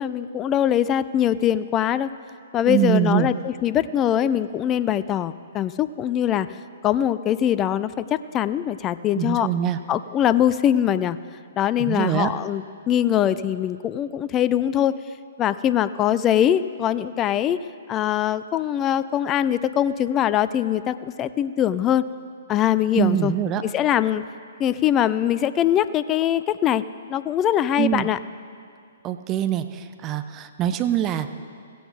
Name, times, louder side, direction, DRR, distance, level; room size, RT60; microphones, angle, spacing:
voice 1, 0.0-2.1 2.5-6.5 6.8-9.5 9.9-11.2 11.6-15.0 15.4-17.6 17.9-22.0 22.5-23.3 23.6-24.2 24.6-26.8 27.1-28.2, left 10 dB, 25° left, 15 dB, 0.4 m, -22 dB
voice 2, 2.7-3.3 9.2-9.8 11.8-12.3 22.9-23.6 27.8-28.1 29.0-31.3, right 11 dB, 25° right, 10 dB, 0.6 m, -23 dB
16.0 x 15.0 x 4.0 m, 2.2 s
figure-of-eight pair, 120°, 0 cm